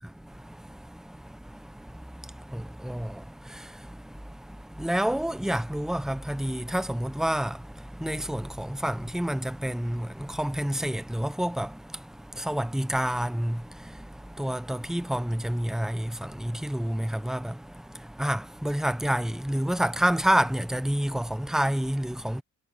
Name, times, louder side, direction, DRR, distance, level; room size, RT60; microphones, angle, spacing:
voice 1, 0.0-22.4, right 1 dB, ahead, 0.9 m, -29 dB
cardioid pair, 90°, 30 cm